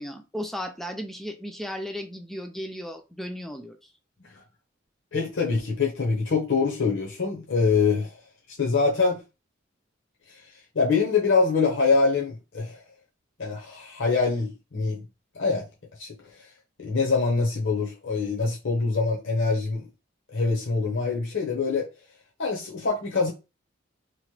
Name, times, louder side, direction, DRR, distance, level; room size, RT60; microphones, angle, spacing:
voice 1, 0.0-3.8, equal, ahead, 0.4 m, -35 dB
voice 2, 5.1-8.1 8.6-9.2 10.7-12.8 13.4-15.0 15.4-15.6 16.0-16.1 16.8-19.9 20.3-21.9 22.4-23.3, left 4 dB, 65° left, 0.7 m, -24 dB
2.9 x 2.2 x 3.0 m
head